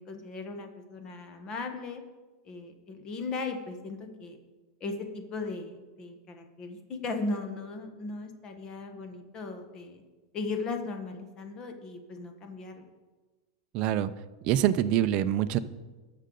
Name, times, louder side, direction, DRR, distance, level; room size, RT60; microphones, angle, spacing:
voice 1, 0.0-2.0 2.4-4.4 4.8-10.0 10.3-12.9, left 3 dB, 25° left, 6 dB, 1.1 m, -37 dB
voice 2, 13.7-14.1 14.4-15.6, right 11 dB, 35° right, 11 dB, 0.5 m, -25 dB
18.5 x 6.5 x 3.9 m, 1.3 s
supercardioid pair, 160°, 3 cm